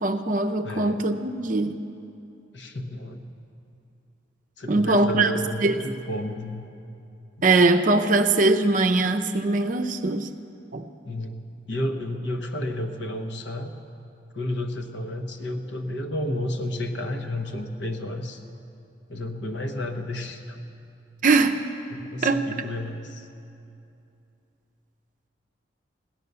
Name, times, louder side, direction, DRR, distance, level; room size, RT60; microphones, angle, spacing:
voice 1, 0.0-1.8 4.7-5.3 5.6-5.8 7.4-10.3 10.7-10.9 21.2-21.6 22.2-22.4, right 3 dB, 45° right, 6 dB, 0.6 m, -21 dB
voice 2, 0.6-1.0 2.5-3.2 4.6-6.6 7.4-7.5 11.0-11.4 11.7-13.7 14.3-18.4 19.1-20.7 21.9-23.3, left 1 dB, 65° left, 5 dB, 1.1 m, -31 dB
16.5 x 11.0 x 6.8 m, 2.7 s
head